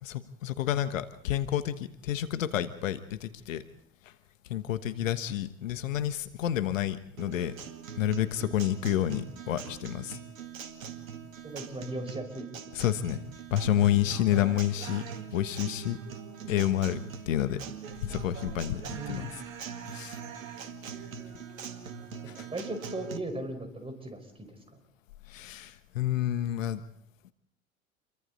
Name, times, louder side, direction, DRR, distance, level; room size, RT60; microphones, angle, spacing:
voice 1, 0.0-3.6 4.0-4.1 4.5-7.5 7.9-10.2 12.7-15.0 15.3-16.0 16.5-17.0 17.3-17.6 18.0-19.4 19.9-20.2 22.3-22.5 25.3-26.8, left 11 dB, 70° left, 12 dB, 1.3 m, -29 dB
Guitar, 7.2-23.2, right 7 dB, 70° right, 2.0 m, -42 dB
voice 2, 11.4-12.4 14.3-14.4 18.9-19.3 22.4-24.5, right 2 dB, 15° right, 6 dB, 5.1 m, -37 dB
28.5 x 23.5 x 4.1 m, 0.63 s
figure-of-eight pair, 85°, 41 cm